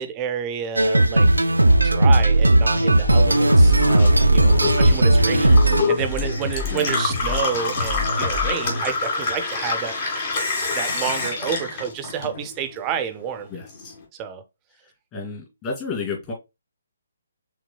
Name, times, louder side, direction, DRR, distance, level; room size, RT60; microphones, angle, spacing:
voice 1, 0.0-10.3 10.7-13.5 14.1-14.4, right 8 dB, 20° right, 0.7 m, -30 dB
sound 1, 0.8-5.8, right 1 dB, 80° right, 0.5 m, -16 dB
sound 2, 2.7-8.8, left 2 dB, 70° left, 2.2 m, -29 dB
Gurgling / Water tap faucet / Sink (filling or washing), 3.2-12.8 13.1-13.9, left 4 dB, 40° left, 1.9 m, -27 dB
voice 2, 4.6-5.0 6.7-6.9 13.5-13.9 15.1-16.3, left 4 dB, 25° left, 2.6 m, -32 dB
5.9 x 3.5 x 2.3 m
figure-of-eight pair, 135°, 0 cm